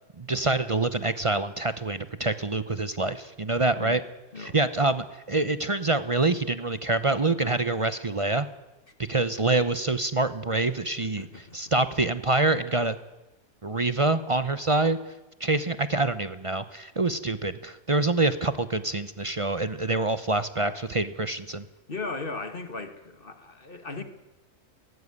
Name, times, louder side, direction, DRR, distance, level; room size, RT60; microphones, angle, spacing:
voice 1, 0.2-4.0 4.4-8.5 9.1-13.0 13.6-15.0 15.4-21.7, right 2 dB, 30° right, 13 dB, 0.6 m, -26 dB
voice 2, 3.7-4.0 4.3-4.6 11.0-11.6 21.9-24.0, left 3 dB, 35° left, 9 dB, 1.7 m, -37 dB
17.5 x 16.0 x 9.7 m, 1.0 s
omnidirectional pair, 1.6 m